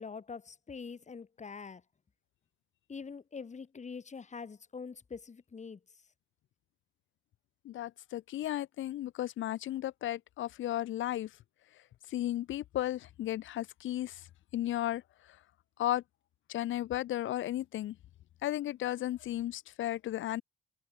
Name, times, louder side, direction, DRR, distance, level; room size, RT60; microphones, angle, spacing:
voice 1, 0.0-1.8 2.9-5.8, left 5 dB, 35° left, 4.6 m, -44 dB
voice 2, 7.6-11.3 12.1-14.3 14.5-15.0 15.3-15.4 15.8-16.0 16.5-18.0 18.4-20.4, left 13 dB, 75° left, 1.5 m, -34 dB
cardioid pair, 90°, 20 cm